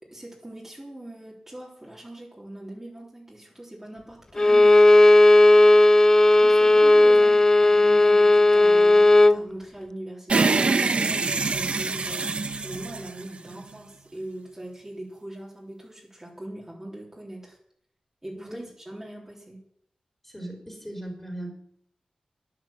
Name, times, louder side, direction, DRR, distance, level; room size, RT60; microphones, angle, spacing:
voice 1, 0.0-4.8 6.7-17.6 18.2-19.6, right 1 dB, 15° right, -4 dB, 3.4 m, -41 dB
Bowed string instrument, 4.4-9.4, left 2 dB, 25° left, 0.4 m, -15 dB
voice 2, 6.4-7.1 18.3-18.7 20.2-21.5, right 1 dB, 10° left, 1 dB, 4.2 m, -38 dB
sound 1, 10.3-13.8, right 4 dB, 55° right, 0.9 m, -25 dB
11.5 x 10.5 x 7.2 m, 0.70 s
wide cardioid pair, 95°, 2 cm